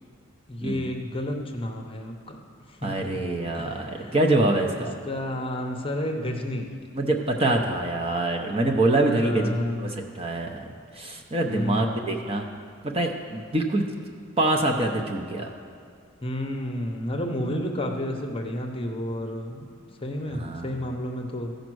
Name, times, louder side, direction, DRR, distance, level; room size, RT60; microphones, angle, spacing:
voice 1, 0.5-2.4 2.7-3.2 3.5-4.1 4.7-6.7 9.0-10.2 11.4-12.3 16.2-19.7 20.0-21.5, left 1 dB, 25° left, 2 dB, 0.7 m, -31 dB
voice 2, 2.8-4.9 6.9-10.6 10.9-12.4 12.8-13.8 14.4-15.5 20.3-20.7, right 2 dB, 25° right, 2 dB, 0.7 m, -25 dB
15.0 x 5.2 x 6.2 m, 2.2 s
head